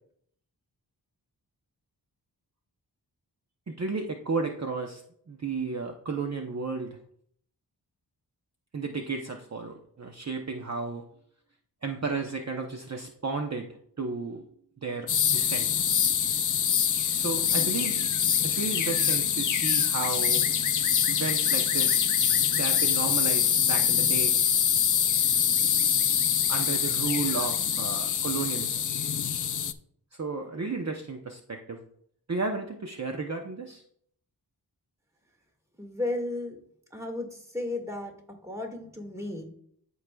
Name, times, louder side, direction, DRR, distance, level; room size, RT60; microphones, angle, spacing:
voice 1, 3.7-5.0 5.3-7.0 8.7-11.0 11.8-13.7 14.0-14.4 14.8-15.7 17.2-18.0 18.4-20.4 21.1-22.1 22.5-24.4 26.5-28.8 30.2-31.8 32.3-33.8, right 4 dB, 40° right, 3 dB, 0.8 m, -33 dB
sound 1, 15.1-29.7, left 8 dB, 50° left, 0.5 m, -25 dB
voice 2, 35.8-36.6 36.9-39.4, left 2 dB, 5° right, 2 dB, 1.9 m, -34 dB
14.0 x 4.8 x 2.3 m, 0.66 s
wide cardioid pair, 65°, 42 cm